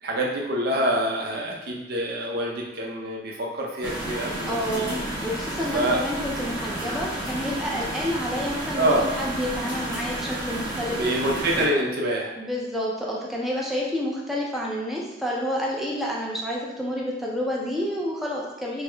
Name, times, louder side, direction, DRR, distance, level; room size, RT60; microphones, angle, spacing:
voice 1, 0.0-5.0 5.7-6.0 8.8-9.1 10.9-12.3, right 1 dB, 60° right, -2 dB, 0.6 m, -26 dB
sound 1, 3.8-11.7, right 1 dB, 25° right, 1.1 m, -31 dB
voice 2, 4.5-11.0 12.4-18.8, equal, ahead, -4 dB, 0.5 m, -29 dB
3.4 x 2.1 x 3.3 m, 1.1 s
head